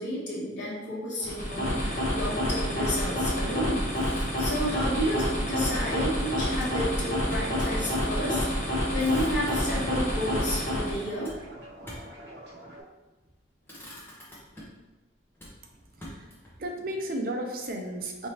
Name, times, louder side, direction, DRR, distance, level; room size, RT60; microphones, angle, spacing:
voice 1, 0.0-3.9 4.2-11.3, equal, 70° left, -6 dB, 1.4 m, -31 dB
sound 1, 1.2-11.1, equal, 40° left, 1.1 m, -28 dB
sound 2, 1.7-12.8, right 1 dB, 65° right, 1.1 m, -45 dB
Motor vehicle (road), 3.9-5.0 6.5-7.8 8.2-8.3 8.6-10.0 11.2-12.2 13.1-13.3 13.6-14.9 15.4-16.6, equal, 10° left, 1.0 m, -45 dB
voice 2, 15.9-18.3, right 1 dB, 50° right, 3 dB, 0.5 m, -34 dB
4.8 x 3.3 x 2.9 m, 1.1 s
head